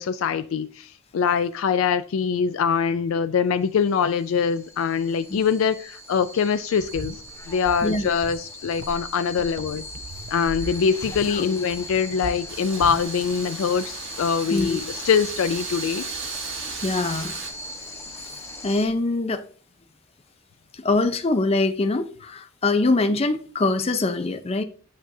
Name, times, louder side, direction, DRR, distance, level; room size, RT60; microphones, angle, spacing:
voice 1, 0.0-7.1 7.5-9.8 10.3-16.1, left 6 dB, 85° left, 0.4 m, -23 dB
sound 1, 3.8-18.9, equal, 15° left, 0.9 m, -39 dB
sound 2, 6.8-13.3, right 3 dB, 55° right, 0.5 m, -39 dB
Wind, 12.5-17.5, right 5 dB, 75° right, 1.5 m, -37 dB
voice 2, 16.8-17.3 18.6-19.4 20.7-24.6, left 2 dB, 30° left, 0.5 m, -23 dB
8.5 x 6.1 x 2.7 m
head